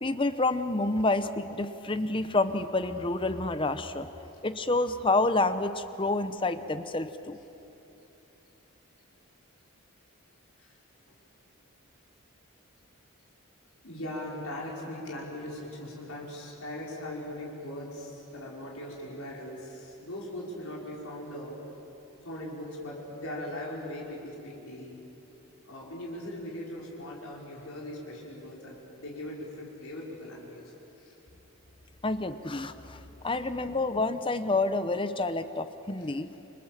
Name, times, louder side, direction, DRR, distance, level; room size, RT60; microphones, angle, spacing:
voice 1, 0.0-4.1 4.4-7.4 32.0-36.3, left 2 dB, 25° left, 11 dB, 0.8 m, -28 dB
voice 2, 13.8-21.6 22.2-24.9 25.6-30.6 31.0-31.1 36.0-36.1, left 1 dB, 75° left, -3 dB, 5.2 m, -40 dB
29.5 x 26.0 x 7.4 m, 3.0 s
head